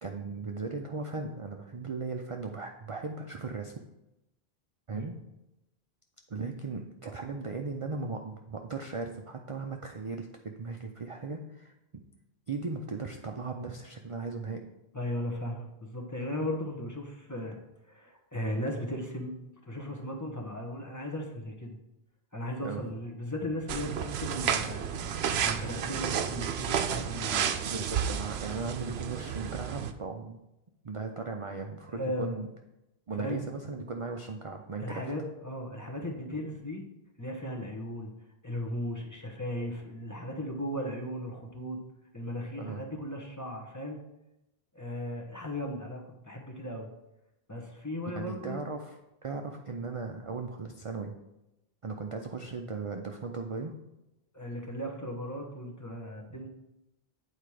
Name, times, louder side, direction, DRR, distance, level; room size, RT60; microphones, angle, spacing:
voice 1, 0.0-3.7 4.9-5.2 6.3-12.0 12.5-14.6 22.6-22.8 27.7-30.4 30.8-32.5 33.1-35.0 42.6-42.8 48.2-49.0 49.2-51.1 51.8-53.7, right 4 dB, 40° right, 3 dB, 0.5 m, -37 dB
voice 2, 14.9-17.6 17.9-19.3 19.6-21.8 22.3-24.9 25.4-27.9 28.8-28.9 31.9-32.3 33.2-33.4 34.8-36.8 37.2-38.1 38.4-41.8 42.1-44.0 44.7-46.9 47.5-48.6 54.3-56.5, left 1 dB, 20° left, 0 dB, 1.1 m, -36 dB
sound 1, 23.7-29.9, right 8 dB, 85° right, 0.9 m, -31 dB
8.8 x 4.5 x 4.9 m, 0.91 s
omnidirectional pair, 1.0 m